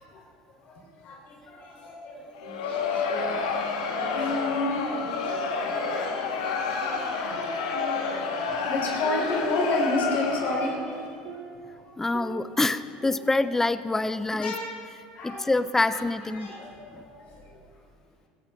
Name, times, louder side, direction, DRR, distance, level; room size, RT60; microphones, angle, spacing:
voice 1, 1.0-2.3 2.6-3.1 4.1-4.8 5.2-5.4 5.6-7.6 8.7-11.0 14.4-14.8 15.1-15.5 15.9-16.0 16.3-17.3, left 2 dB, 50° left, -1 dB, 4.2 m, -31 dB
Crowd, 2.3-10.8, left 5 dB, 90° left, 1.8 m, -29 dB
sound 1, 2.4-4.5 4.9-7.4 7.7-11.8 12.1-14.1, right 4 dB, 70° right, 3.4 m, -43 dB
voice 2, 12.0-14.6 15.2-16.5 16.9-17.0, left 2 dB, 10° left, 14 dB, 0.6 m, -26 dB
16.5 x 15.0 x 3.9 m, 2.2 s
supercardioid pair, 95°, 3 cm